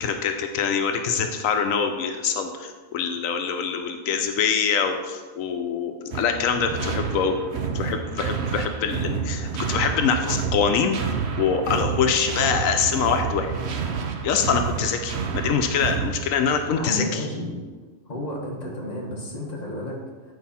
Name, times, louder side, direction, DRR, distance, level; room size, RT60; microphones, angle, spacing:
voice 1, 0.0-7.3 7.7-11.0 11.4-13.5 14.2-17.2, left 6 dB, 85° left, 6 dB, 1.0 m, -24 dB
sound 1, 6.1-16.9, right 6 dB, 60° right, 0.9 m, -29 dB
voice 2, 16.7-17.6 18.1-20.3, left 1 dB, 30° left, -3 dB, 1.5 m, -32 dB
9.3 x 4.9 x 4.2 m, 1.4 s
omnidirectional pair, 1.4 m